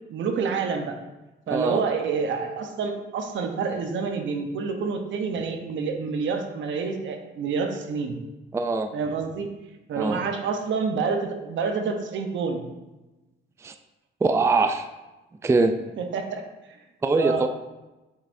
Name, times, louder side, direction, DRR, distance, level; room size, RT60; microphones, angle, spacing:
voice 1, 0.1-1.0 1.5-8.2 8.9-9.5 9.9-12.7 16.0-16.4 17.2-17.5, right 5 dB, 70° right, 5 dB, 0.9 m, -28 dB
voice 2, 1.5-1.8 8.5-8.9 10.0-10.2 13.6-13.7 14.2-14.9 15.4-15.8 17.0-17.5, right 3 dB, 15° right, 7 dB, 0.4 m, -22 dB
7.9 x 5.5 x 2.6 m, 1.1 s
cardioid pair, 90°, 20 cm